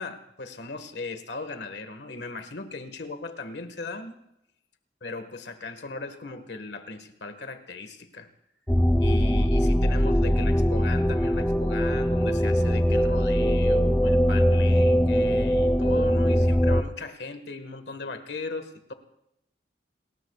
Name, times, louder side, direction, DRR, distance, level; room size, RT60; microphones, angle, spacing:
voice 1, 0.0-4.2 5.0-8.3 9.0-18.9, left 3 dB, 80° left, 8 dB, 1.6 m, -37 dB
sound 1, 8.7-16.8, equal, 10° left, 0.5 m, -21 dB
30.0 x 20.5 x 2.4 m, 0.84 s
head